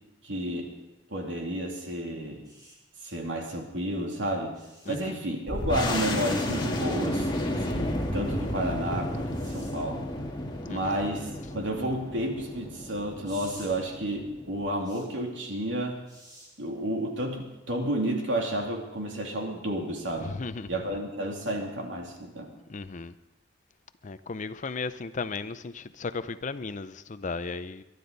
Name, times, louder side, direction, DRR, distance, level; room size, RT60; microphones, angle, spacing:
voice 1, 0.2-0.7 1.1-2.4 3.0-4.6 4.9-10.0 10.7-16.0 16.6-20.3 20.7-22.5, right 1 dB, 90° right, 2.8 m, -31 dB
sound 1, 2.4-2.8 4.5-5.0 6.3-6.5 9.3-9.7 13.2-13.7 14.8-15.0 16.1-16.5 18.0-18.1, right 1 dB, 25° right, 4.7 m, -50 dB
voice 2, 4.9-5.2 10.7-11.0 20.2-20.7 22.7-23.1 24.0-27.8, left 4 dB, 45° left, 0.6 m, -35 dB
sound 2, 5.5-14.7, left 1 dB, 25° left, 2.0 m, -32 dB
23.0 x 12.0 x 4.0 m
head